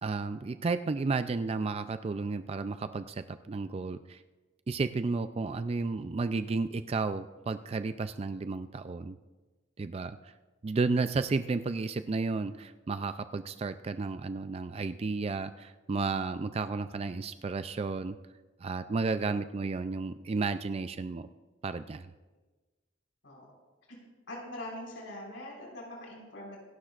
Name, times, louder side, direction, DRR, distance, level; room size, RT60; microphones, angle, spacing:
voice 1, 0.0-4.2 4.7-9.2 9.8-10.3 10.6-18.2 18.6-21.3 21.6-22.1, right 4 dB, 30° right, 10 dB, 0.3 m, -32 dB
voice 2, 24.3-26.6, left 1 dB, 80° left, -3 dB, 5.2 m, -43 dB
26.5 x 12.0 x 2.5 m, 1.2 s
head